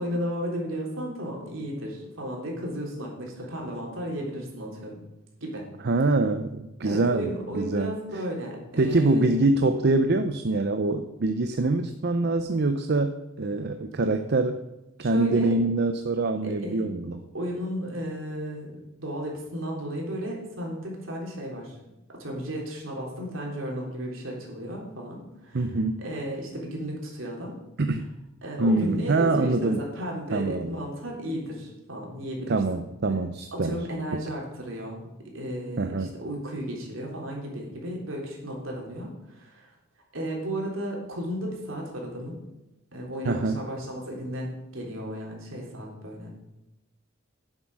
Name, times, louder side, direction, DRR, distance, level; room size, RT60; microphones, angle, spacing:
voice 1, 0.0-5.0 5.4-5.7 6.8-9.3 15.0-15.5 16.4-16.9 17.3-21.8 22.2-25.7 26.0-27.5 28.4-32.6 33.5-35.0 35.3-39.7 40.1-42.4 42.9-46.4, equal, 70° right, -1 dB, 3.4 m, -34 dB
voice 2, 5.8-7.9 8.8-14.6 15.0-17.2 25.5-26.0 27.8-28.0 28.6-29.8 30.3-30.7 32.5-33.8 34.1-34.2 35.8-36.1 43.2-43.6, right 2 dB, 55° right, 8 dB, 0.6 m, -24 dB
10.0 x 7.5 x 6.3 m, 0.97 s
head